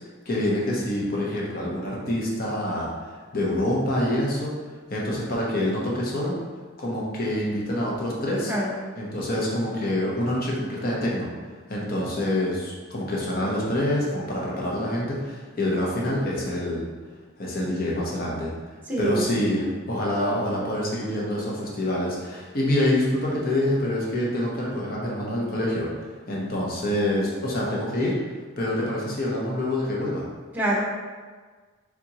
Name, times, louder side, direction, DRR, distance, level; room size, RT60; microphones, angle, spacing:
voice 1, 0.3-4.5 4.9-6.4 6.8-8.5 9.0-11.3 11.7-16.8 17.4-18.5 19.0-25.9 26.3-28.2 28.6-30.3, left 1 dB, 45° left, -4 dB, 0.9 m, -26 dB
voice 2, 18.8-19.3 30.5-30.8, right 1 dB, 10° right, -5 dB, 0.8 m, -25 dB
4.2 x 3.6 x 2.9 m, 1.4 s
head